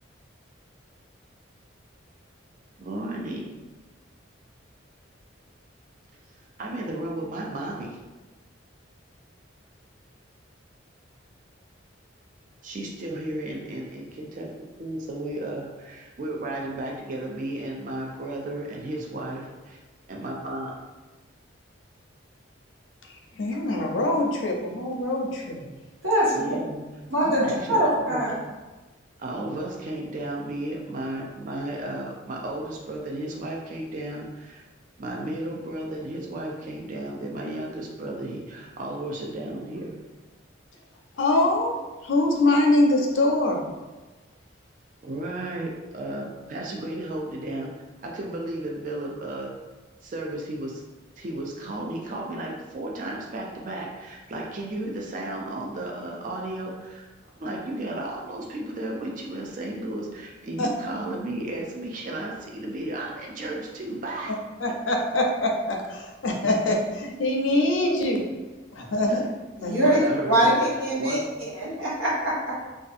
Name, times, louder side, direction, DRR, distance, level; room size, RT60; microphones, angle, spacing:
voice 1, 2.8-3.5 6.6-8.0 12.6-14.5 14.8-19.8 20.1-20.7 26.3-26.8 27.4-28.2 29.2-34.7 35.0-40.0 45.0-47.7 48.0-49.5 50.0-50.8 51.2-57.0 57.4-64.3 69.0-69.2 69.8-70.6 71.0-71.2, right 1 dB, 40° right, -1 dB, 0.4 m, -33 dB
voice 2, 23.4-25.6 27.2-27.5 41.2-43.6 60.6-60.7 64.6-68.2 68.7-69.3 69.6-69.8, left 1 dB, 80° left, 1 dB, 0.5 m, -24 dB
voice 3, 26.0-26.6 27.1-28.3 69.6-70.0 70.3-71.2 71.5-72.5, right 1 dB, 85° right, -7 dB, 1.1 m, -23 dB
2.5 x 2.3 x 2.5 m, 1.2 s
head